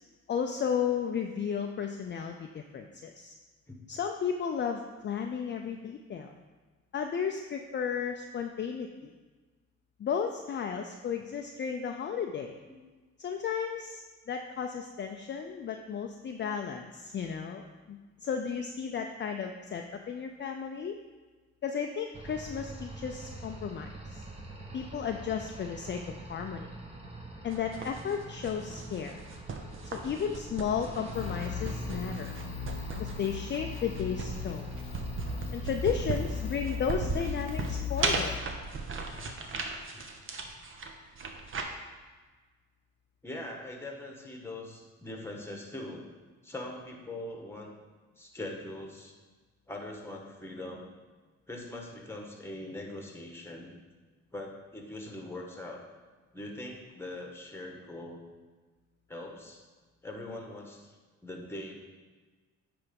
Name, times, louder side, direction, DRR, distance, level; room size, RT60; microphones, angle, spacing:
voice 1, 0.3-3.3 3.9-6.3 6.9-9.1 10.0-12.6 13.2-21.0 21.6-24.2 24.7-26.0 26.3-26.7 27.4-29.2 29.9-32.3 33.0-34.7 35.5-38.4, left 7 dB, 40° left, 4 dB, 0.5 m, -34 dB
sound 1, 22.1-36.6, right 2 dB, 20° right, 1.3 m, -45 dB
sound 2, 27.5-41.6, right 4 dB, 45° right, 1.0 m, -37 dB
sound 3, 31.1-38.4, left 7 dB, 90° left, 0.7 m, -38 dB
voice 2, 43.2-46.1 46.4-47.7 48.2-49.1 49.7-50.8 51.5-53.7 54.3-55.8 56.3-58.2 59.1-59.6 60.0-61.0 61.2-61.7, left 1 dB, 10° left, 1 dB, 1.4 m, -42 dB
9.4 x 3.4 x 5.3 m, 1.4 s
cardioid pair, 90°, 30 cm